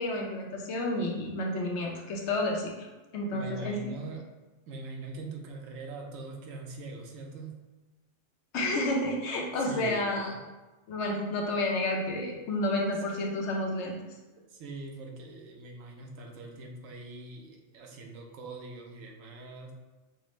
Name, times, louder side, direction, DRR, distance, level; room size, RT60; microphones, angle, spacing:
voice 1, 0.0-2.9 3.1-3.8 8.5-10.3 10.9-14.0, left 1 dB, 65° left, 0 dB, 0.9 m, -30 dB
voice 2, 3.3-4.3 4.7-7.5 9.6-10.4 14.5-19.7, right 2 dB, 85° right, 1 dB, 1.0 m, -42 dB
5.8 x 2.1 x 3.0 m, 1.2 s
omnidirectional pair, 1.3 m